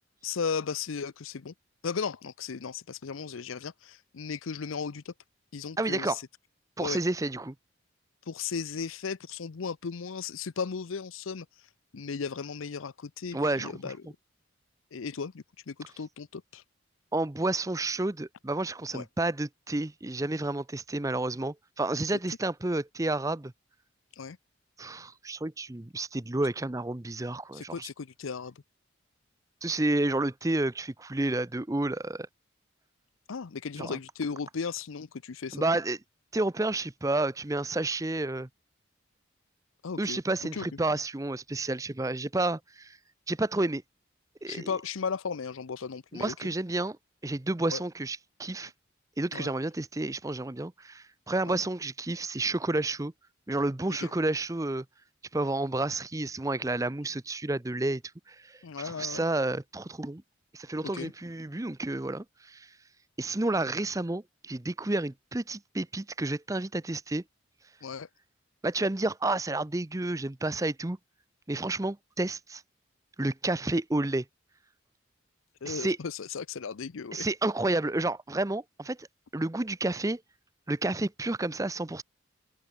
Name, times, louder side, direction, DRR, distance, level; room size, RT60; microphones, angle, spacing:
voice 1, 0.2-1.5 1.8-5.1 5.5-6.2 6.8-7.0 8.3-11.5 11.9-14.0 14.9-16.6 18.9-19.0 24.2-24.4 27.5-28.5 33.3-35.6 39.8-40.2 40.5-40.8 44.5-46.5 47.7-47.8 49.3-49.5 51.4-51.6 54.0-54.1 58.6-59.2 60.9-61.1 67.8-68.1 75.6-77.3, left 5 dB, 90° left, 0.6 m, -36 dB
voice 2, 5.8-6.2 6.8-7.5 13.3-13.9 17.1-23.5 24.8-27.9 29.6-32.3 33.8-34.0 35.5-36.0 36.3-38.5 40.0-43.0 43.3-43.8 44.4-44.7 46.1-47.0 47.2-48.7 49.2-53.1 53.5-54.8 55.3-58.0 58.3-60.2 60.5-62.7 63.2-67.2 68.6-71.0 71.5-72.6 73.2-74.2 75.7-76.0 77.1-79.1 79.3-80.2 80.7-82.0, right 2 dB, 15° right, 0.6 m, -30 dB
open air
head